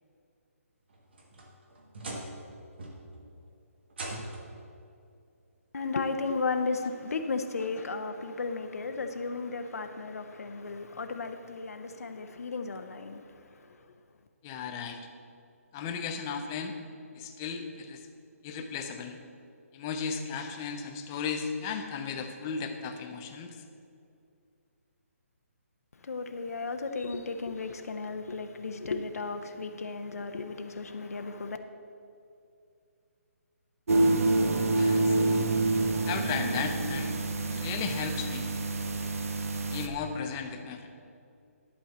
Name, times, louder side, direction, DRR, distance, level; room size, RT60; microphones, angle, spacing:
sound 1, 0.9-2.5 2.8-3.3 3.9-4.6 5.8-5.9 6.5-6.6 8.2-8.3, right 2 dB, 45° right, 1.5 m, -41 dB
voice 1, 5.7-13.8 26.0-31.6, left 4 dB, 80° left, 0.7 m, -34 dB
voice 2, 14.4-15.0 15.7-16.7 17.2-18.0 18.4-19.2 19.7-23.5 34.8-35.4 36.1-37.2 37.5-38.5 39.7-40.9, left 6 dB, 10° left, 0.4 m, -35 dB
sound 2, 33.9-39.9, right 2 dB, 70° right, 0.9 m, -27 dB
11.0 x 4.3 x 7.9 m
hypercardioid pair, 175°, 8 cm